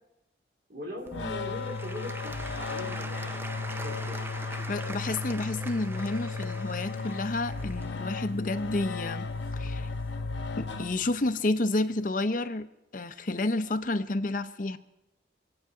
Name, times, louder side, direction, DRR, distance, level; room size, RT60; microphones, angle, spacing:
voice 1, 0.7-4.6, equal, 55° right, 0 dB, 3.2 m, -41 dB
sound 1, 1.1-11.4, left 4 dB, 80° left, 1.1 m, -35 dB
Applause / Crowd, 1.1-9.9 10.6-10.7, right 2 dB, 10° right, 0.4 m, -43 dB
voice 2, 4.7-9.3 9.5-9.9 10.6-12.7 12.9-14.8, left 2 dB, 45° left, 10 dB, 0.6 m, -30 dB
25.5 x 8.7 x 4.8 m, 0.95 s
head